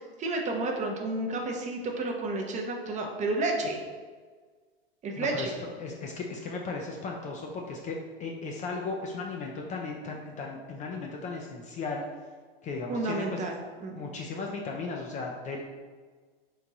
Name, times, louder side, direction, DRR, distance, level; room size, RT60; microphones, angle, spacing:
voice 1, 0.2-3.8 5.0-5.5 12.9-13.5 13.8-14.0, right 2 dB, 25° right, 1 dB, 0.6 m, -31 dB
voice 2, 5.2-5.5 5.8-12.0 12.6-13.4 13.9-15.6, left 4 dB, 25° left, 0 dB, 0.4 m, -36 dB
3.4 x 3.0 x 3.8 m, 1.5 s
hypercardioid pair, 105°, 31 cm